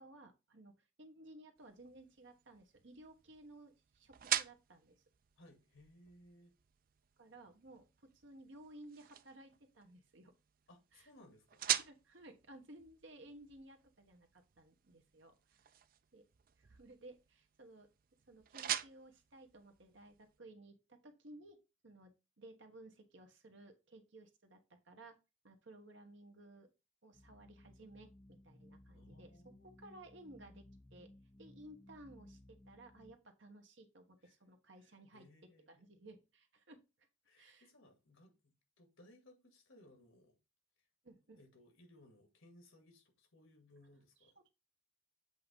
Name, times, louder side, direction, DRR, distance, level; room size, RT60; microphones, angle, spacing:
voice 1, 0.0-5.0 7.2-7.8 8.1-10.3 10.9-11.1 11.7-15.7 16.1-16.3 16.6-17.9 18.3-21.6 21.8-25.2 25.4-26.7 27.0-29.3 29.6-30.6 30.9-31.1 31.4-35.3 35.7-36.8 37.4-37.7 41.0-41.4, right 1 dB, 65° right, 1.2 m, -57 dB
sound 1, 1.6-20.4, right 11 dB, 45° right, 0.4 m, -45 dB
voice 2, 5.4-6.6 10.7-11.6 28.9-29.7 34.2-34.4 34.8-35.7 37.2-40.4 41.4-44.4, left 1 dB, 80° left, 2.0 m, -63 dB
sound 2, 27.1-33.1, left 1 dB, 10° left, 0.6 m, -60 dB
7.8 x 2.8 x 5.2 m
head